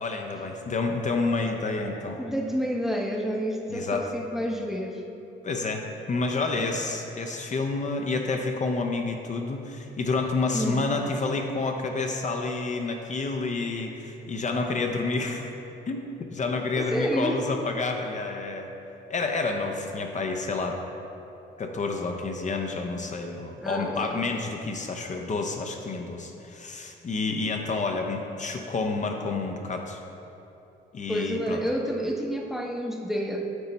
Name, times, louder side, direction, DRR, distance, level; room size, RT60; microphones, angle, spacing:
voice 1, 0.0-2.2 3.7-4.1 5.4-15.5 15.9-18.7 19.1-20.8 21.6-30.0 30.9-31.6, left 3 dB, 40° left, 3 dB, 0.6 m, -29 dB
voice 2, 2.2-5.0 10.5-10.9 16.8-17.4 23.6-24.1 31.1-33.4, equal, ahead, 1 dB, 0.6 m, -29 dB
8.0 x 4.3 x 4.0 m, 2.9 s
cardioid pair, 90°, 20 cm